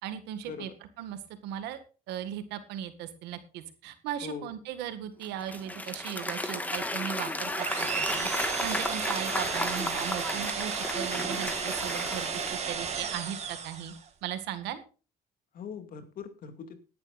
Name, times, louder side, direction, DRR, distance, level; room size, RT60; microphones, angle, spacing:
voice 1, 0.0-0.7 1.0-1.8 2.1-13.9 14.2-14.8, right 10 dB, 90° right, 10 dB, 1.8 m, -38 dB
voice 2, 4.2-4.5 15.5-16.8, left 6 dB, 55° left, 8 dB, 2.3 m, -41 dB
Applause / Crowd, 5.2-13.0, left 1 dB, 10° left, 1.7 m, -34 dB
sound 1, 7.6-14.1, right 6 dB, 40° right, 2.3 m, -34 dB
19.0 x 10.5 x 2.5 m, 0.35 s
cardioid pair, 110°, 17 cm